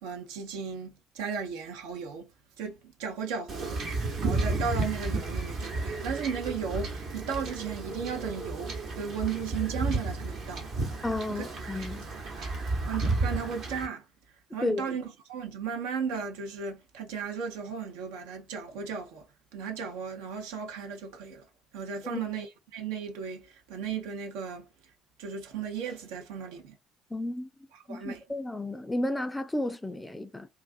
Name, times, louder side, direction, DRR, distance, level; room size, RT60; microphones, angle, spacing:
voice 1, 0.0-2.3 2.6-3.8 4.2-10.7 11.3-11.5 11.7-11.8 12.4-12.5 12.9-14.0 14.5-19.3 19.5-21.4 21.7-24.6 25.2-26.7 27.7-28.2, right 6 dB, 65° right, 0.6 m, -35 dB
Wind / Ocean / Boat Water vehicle, 3.5-13.9, right 3 dB, 50° right, 1.0 m, -32 dB
voice 2, 11.0-12.1 14.6-14.9 22.1-22.2 27.1-27.5 27.9-30.5, left 1 dB, 10° left, 0.4 m, -32 dB
2.5 x 2.3 x 2.4 m
figure-of-eight pair, 55°, 0 cm